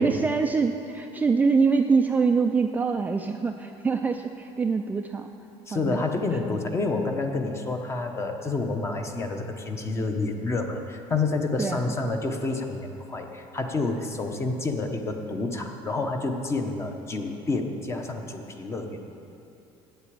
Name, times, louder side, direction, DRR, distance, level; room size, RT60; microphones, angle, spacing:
voice 1, 0.0-5.3 5.7-6.0 11.6-11.9, right 5 dB, 15° right, 4 dB, 0.3 m, -24 dB
voice 2, 5.7-19.1, left 3 dB, 25° left, 5 dB, 0.9 m, -29 dB
8.7 x 8.0 x 8.5 m, 2.8 s
cardioid pair, 150°, 12 cm